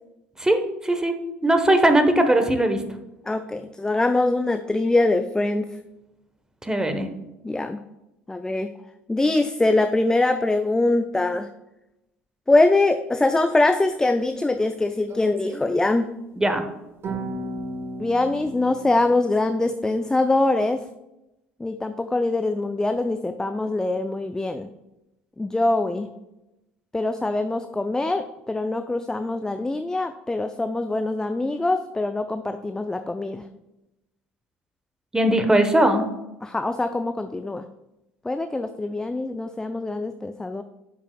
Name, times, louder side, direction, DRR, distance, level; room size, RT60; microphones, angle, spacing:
voice 1, 0.4-1.2 1.4-2.8 6.6-7.1 16.4-16.7 35.1-36.0, right 1 dB, 10° right, 7 dB, 1.1 m, -19 dB
voice 2, 3.2-5.8 7.4-7.8 8.3-8.7 9.1-11.5 12.5-16.1 18.0-20.9 21.6-24.7 25.4-26.1 26.9-33.5 36.4-37.6 38.2-40.6, left 2 dB, 10° left, 8 dB, 0.4 m, -23 dB
sound 1, 15.1-15.6 17.0-19.1, right 1 dB, 40° right, 1.1 m, -34 dB
11.0 x 5.8 x 2.3 m, 0.92 s
figure-of-eight pair, 65°, 6 cm